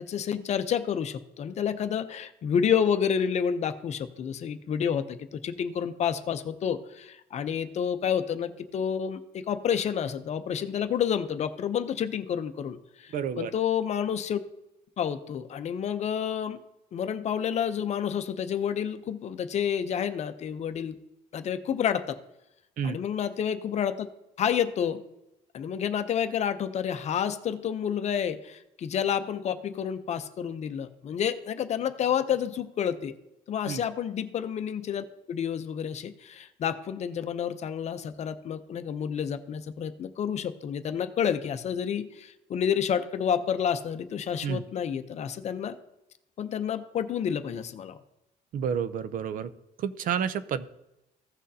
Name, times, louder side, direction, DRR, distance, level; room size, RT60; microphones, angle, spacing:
voice 1, 0.0-14.4 15.0-16.6 16.9-21.0 21.3-22.2 22.8-24.1 24.4-25.0 25.5-33.1 33.5-45.8 46.4-48.0, left 8 dB, 45° left, 10 dB, 0.6 m, -29 dB
voice 2, 13.1-13.5 22.8-23.0 33.7-33.8 44.4-44.6 48.5-49.5 49.8-50.7, right 7 dB, 55° right, 14 dB, 0.5 m, -30 dB
15.5 x 6.3 x 2.7 m, 0.91 s
cardioid pair, 140°, 16 cm